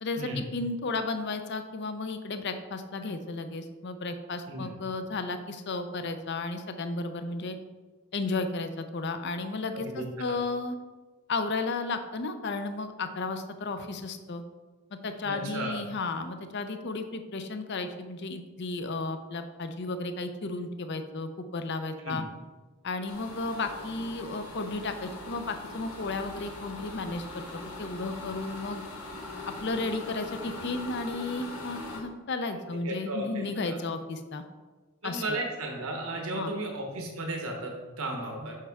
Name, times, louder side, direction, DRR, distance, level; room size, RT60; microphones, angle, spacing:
voice 1, 0.0-7.6 8.1-10.8 11.3-14.4 15.0-22.2 22.8-28.8 29.5-34.4 35.0-35.2 36.3-36.5, left 3 dB, 50° left, 8 dB, 0.5 m, -33 dB
voice 2, 9.7-10.4 15.2-15.8 22.0-22.2 32.5-33.8 35.0-38.5, right 1 dB, 75° right, 2 dB, 1.0 m, -35 dB
sound 1, 23.1-32.0, left 2 dB, 90° left, 1.3 m, -41 dB
6.5 x 5.5 x 3.5 m, 1.3 s
head